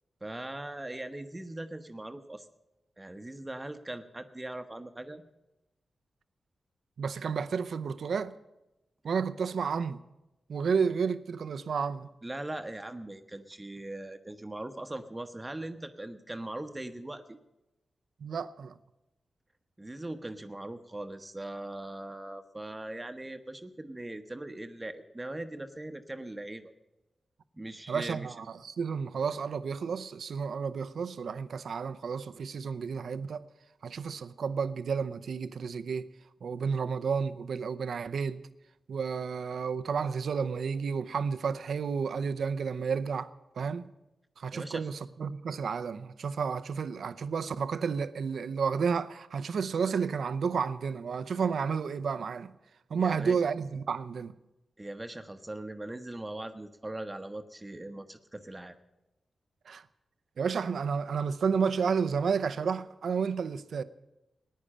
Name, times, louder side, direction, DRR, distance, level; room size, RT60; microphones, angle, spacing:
voice 1, 0.2-2.5 3.0-5.2 12.2-17.4 19.8-26.7 27.5-28.3 44.5-44.9 53.0-53.4 54.8-58.8, right 1 dB, 20° right, 1.0 m, -40 dB
voice 2, 7.0-8.3 9.0-10.0 10.5-12.1 18.2-18.8 27.9-33.4 33.8-36.1 36.4-38.4 38.9-43.3 43.6-43.9 44.4-52.5 52.9-54.3 59.7-59.8 60.4-63.8, right 6 dB, 75° right, 0.6 m, -31 dB
15.0 x 9.8 x 8.7 m
cardioid pair, 50°, 0 cm